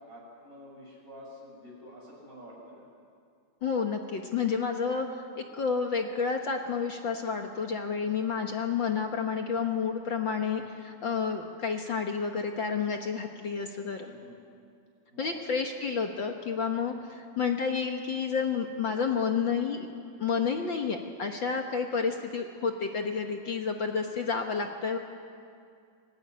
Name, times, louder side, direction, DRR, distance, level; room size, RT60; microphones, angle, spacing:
voice 1, 0.0-2.8 10.5-10.7 14.1-14.4 15.1-15.6 16.9-17.1 20.4-20.5, equal, 25° right, -2 dB, 7.0 m, -49 dB
voice 2, 3.6-14.1 15.2-19.9 20.2-25.0, left 5 dB, 60° left, 4 dB, 1.3 m, -30 dB
26.0 x 17.5 x 9.9 m, 2.4 s
omnidirectional pair, 3.7 m